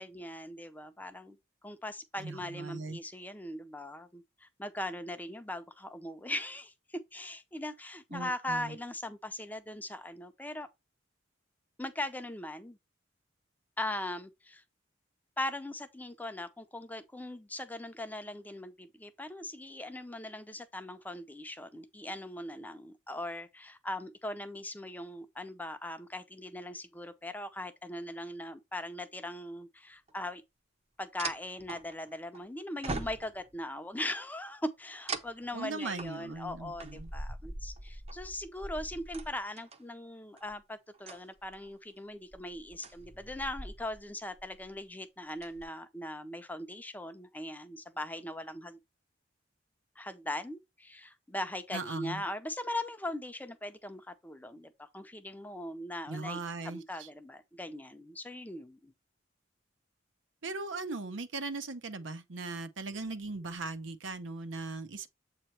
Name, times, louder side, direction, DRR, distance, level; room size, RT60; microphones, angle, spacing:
voice 1, 0.0-1.4 1.6-10.7 11.8-12.8 13.8-14.6 15.4-30.4 31.0-48.8 50.0-56.4 56.6-58.9, left 1 dB, 10° left, 0.5 m, -40 dB
voice 2, 2.2-3.0 8.1-8.8 35.5-37.1 51.7-52.2 56.1-57.1 60.4-65.1, right 3 dB, 80° right, 0.8 m, -39 dB
sound 1, 30.1-30.2 31.2-32.4 32.8-33.6 35.1-39.8 40.4-40.6 40.9-41.7 42.3-44.1 44.4-44.7 45.2-45.6, right 2 dB, 35° right, 0.7 m, -42 dB
7.7 x 2.9 x 4.4 m
head